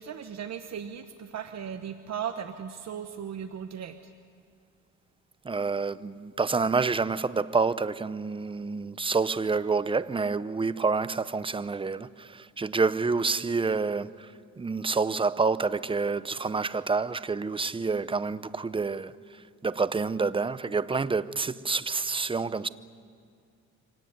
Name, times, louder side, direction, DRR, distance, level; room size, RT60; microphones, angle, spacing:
voice 1, 0.0-4.1, right 8 dB, 60° right, 1.1 m, -37 dB
voice 2, 5.4-22.7, right 4 dB, 15° right, 0.7 m, -28 dB
25.0 x 18.0 x 9.3 m
cardioid pair, 90°, 30 cm